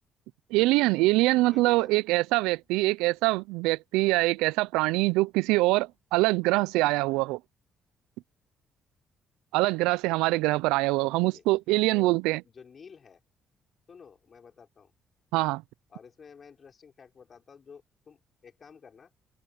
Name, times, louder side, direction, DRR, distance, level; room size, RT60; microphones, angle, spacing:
voice 1, 0.5-7.4 9.5-12.4 15.3-15.6, right 21 dB, 90° right, 0.4 m, -24 dB
voice 2, 1.5-2.0 11.0-11.4 11.9-12.2 12.4-13.2 13.9-14.9 15.9-19.1, left 6 dB, 50° left, 4.3 m, -51 dB
open air
supercardioid pair, 60°, 0 cm